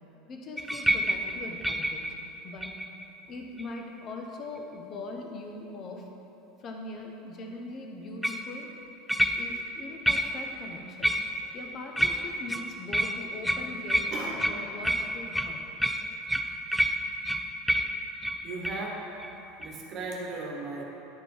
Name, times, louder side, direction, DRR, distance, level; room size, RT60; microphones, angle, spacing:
voice 1, 0.3-2.1 2.4-2.8 3.3-6.1 6.6-8.7 9.4-11.2 11.5-15.6, left 2 dB, 35° left, 2 dB, 1.1 m, -41 dB
sound 1, 0.6-3.1 3.6-4.0 8.2-8.5 9.1-9.7 10.1-10.5 11.0-11.6 12.0-18.9 19.2-19.3 19.6-19.8, equal, ahead, 0.4 m, -29 dB
voice 2, 14.1-14.4 18.4-19.1 19.6-20.8, right 3 dB, 40° right, 0 dB, 1.3 m, -36 dB
10.0 x 5.1 x 4.7 m, 3.0 s
supercardioid pair, 130°, 0 cm